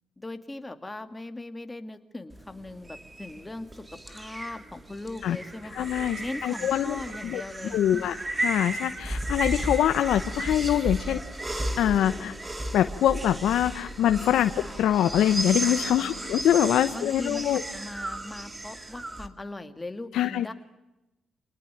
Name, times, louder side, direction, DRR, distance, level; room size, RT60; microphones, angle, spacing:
voice 1, 0.2-5.9 6.2-8.2 14.5-14.8 16.0-16.5 16.9-20.5, left 2 dB, 15° left, 8 dB, 2.4 m, -39 dB
sound 1, 2.3-19.3, right 1 dB, 20° right, 2.5 m, -34 dB
voice 2, 5.7-7.4 7.7-11.2 11.8-12.3 12.7-17.6 20.1-20.5, left 11 dB, 80° left, 10 dB, 1.0 m, -24 dB
27.5 x 19.5 x 9.2 m, 0.99 s
cardioid pair, 90°, 0 cm